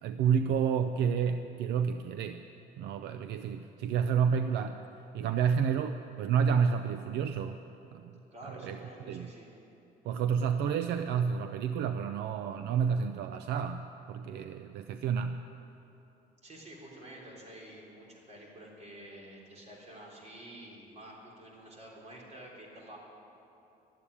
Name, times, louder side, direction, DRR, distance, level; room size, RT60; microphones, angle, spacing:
voice 1, 0.0-2.4 2.8-4.8 5.1-7.6 7.9-8.0 8.4-8.8 9.1-9.3 10.1-15.4, right 7 dB, 80° right, 9 dB, 0.5 m, -30 dB
voice 2, 8.3-9.5 16.4-23.0, right 1 dB, 40° right, -2 dB, 3.9 m, -49 dB
13.0 x 8.5 x 9.8 m, 2.9 s
cardioid pair, 110°, 17 cm